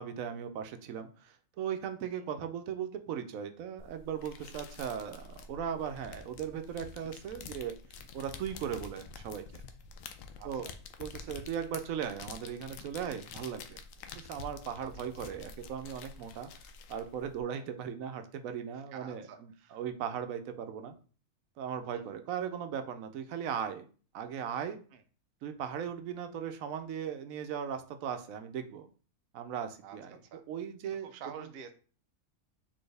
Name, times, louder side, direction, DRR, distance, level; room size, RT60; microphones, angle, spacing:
voice 1, 0.0-7.8 8.1-9.6 10.4-10.7 11.0-13.8 14.1-16.5 16.9-20.9 21.6-23.9 24.1-24.8 25.4-28.9 29.3-30.2 30.5-31.1, right 8 dB, 85° right, 8 dB, 1.0 m, -38 dB
sound 1, 3.8-17.4, left 5 dB, 80° left, 1.0 m, -48 dB
voice 2, 10.4-10.7 14.1-14.2 14.8-14.9 17.5-17.7 18.9-19.8 21.9-22.0 24.9-25.0 29.8-30.0 30.2-30.4 31.0-31.7, right 7 dB, 60° right, 8 dB, 0.7 m, -48 dB
4.2 x 3.5 x 3.3 m, 0.39 s
omnidirectional pair, 1.4 m